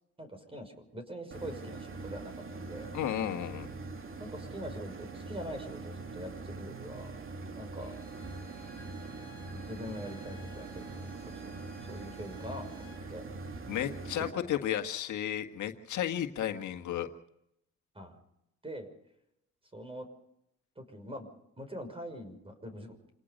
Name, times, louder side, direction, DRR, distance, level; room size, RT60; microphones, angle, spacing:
voice 1, 0.2-2.9 4.2-7.1 7.5-7.9 9.5-11.5 11.8-13.2 14.4-14.6 17.9-18.2 18.6-18.9 19.7-20.1 20.8-21.3 21.6-23.0, equal, 20° right, 8 dB, 5.9 m, -43 dB
sound 1, 1.3-14.3, right 3 dB, 45° right, 2.7 m, -43 dB
voice 2, 2.9-3.7 13.7-17.1, left 11 dB, 75° left, 6 dB, 1.7 m, -33 dB
Bowed string instrument, 7.8-13.1, left 1 dB, 5° left, 7.4 m, -56 dB
27.5 x 18.0 x 5.4 m, 0.79 s
cardioid pair, 90°, 30 cm